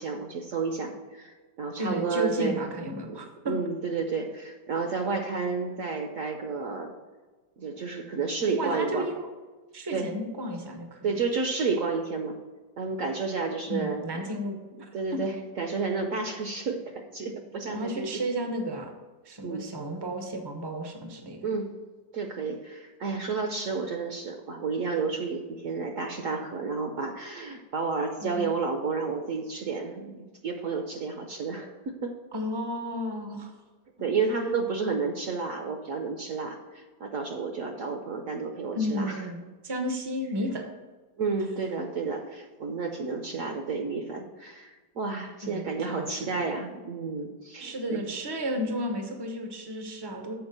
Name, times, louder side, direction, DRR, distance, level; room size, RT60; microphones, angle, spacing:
voice 1, 0.0-2.6 3.4-6.9 7.6-9.1 9.9-10.1 11.0-12.4 12.8-14.3 14.9-16.8 17.1-18.1 19.4-19.6 21.4-21.7 22.1-32.2 34.0-39.3 41.2-48.0, right 4 dB, 60° right, 4 dB, 0.9 m, -31 dB
voice 2, 1.8-3.5 8.6-9.3 9.7-11.1 13.7-15.2 17.7-18.9 19.2-21.4 28.2-28.5 32.3-33.5 38.7-40.6 45.4-46.4 47.6-50.4, equal, 35° right, 4 dB, 0.3 m, -33 dB
7.1 x 4.5 x 6.6 m, 1.3 s
omnidirectional pair, 1.9 m